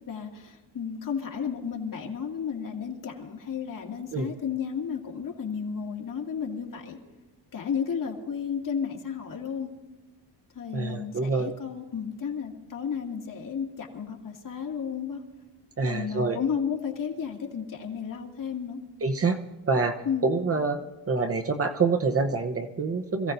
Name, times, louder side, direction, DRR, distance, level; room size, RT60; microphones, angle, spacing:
voice 1, 0.1-7.0 7.5-9.7 10.5-15.2 15.8-18.8 20.0-20.3, left 7 dB, 50° left, 1 dB, 2.4 m, -33 dB
voice 2, 10.7-11.5 15.8-16.4 19.0-19.4 19.7-20.0 20.2-20.8 21.1-23.3, right 4 dB, 35° right, 5 dB, 0.9 m, -26 dB
26.5 x 16.0 x 2.7 m, 1.2 s
cardioid pair, 110°, 43 cm